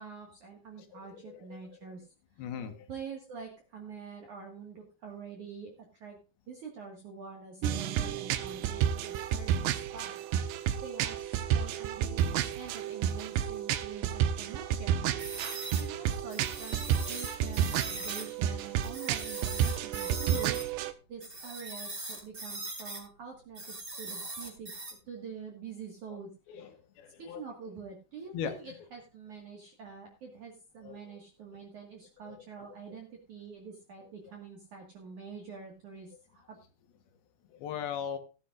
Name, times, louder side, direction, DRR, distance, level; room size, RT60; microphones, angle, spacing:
voice 1, 0.0-2.1 2.3-2.5 2.9-6.2 6.5-10.5 10.8-15.1 15.7-24.7 25.1-26.7 27.2-36.6, right 6 dB, 55° right, 1 dB, 2.5 m, -46 dB
voice 2, 1.1-1.6 2.4-2.9 26.1-26.2 26.5-27.4 28.3-28.7 30.8-31.0 32.3-33.0 37.5-38.2, left 7 dB, 65° left, 8 dB, 2.7 m, -39 dB
sound 1, 7.6-20.9, right 10 dB, 80° right, 2.5 m, -31 dB
sound 2, 15.2-18.3 18.8-20.7 21.2-23.0 23.5-24.9, right 2 dB, 20° right, 3.9 m, -40 dB
17.0 x 10.5 x 2.5 m, 0.32 s
omnidirectional pair, 5.6 m